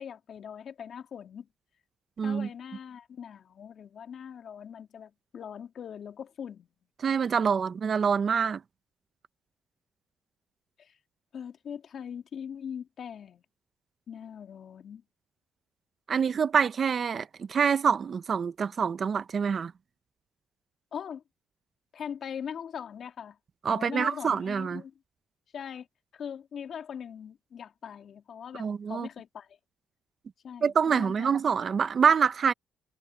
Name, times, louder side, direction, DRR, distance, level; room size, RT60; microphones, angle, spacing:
voice 1, 0.0-1.5 2.2-6.7 10.8-10.9 11.3-13.4 14.1-15.0 20.9-21.2 21.9-23.4 23.7-24.9 25.5-25.9 26.1-29.6 30.4-31.4, left 8 dB, 60° left, 3.1 m, -41 dB
voice 2, 2.2-2.5 7.0-8.6 16.1-19.7 23.6-24.8 28.6-29.1 30.6-32.5, right 6 dB, 45° right, 0.8 m, -26 dB
cardioid pair, 90°, 0 cm